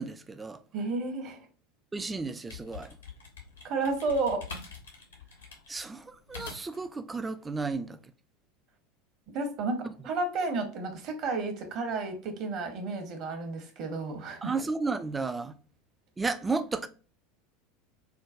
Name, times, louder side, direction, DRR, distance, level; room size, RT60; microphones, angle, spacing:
voice 1, 0.0-0.6 1.9-2.9 5.7-8.0 14.4-15.5 16.2-16.9, right 4 dB, 15° right, 0.3 m, -33 dB
voice 2, 0.7-1.4 3.6-4.4 9.3-14.5, right 3 dB, 45° right, 0.8 m, -32 dB
sound 1, 2.5-6.9, left 4 dB, 80° left, 0.8 m, -45 dB
4.4 x 2.2 x 2.4 m
figure-of-eight pair, 75°, 0 cm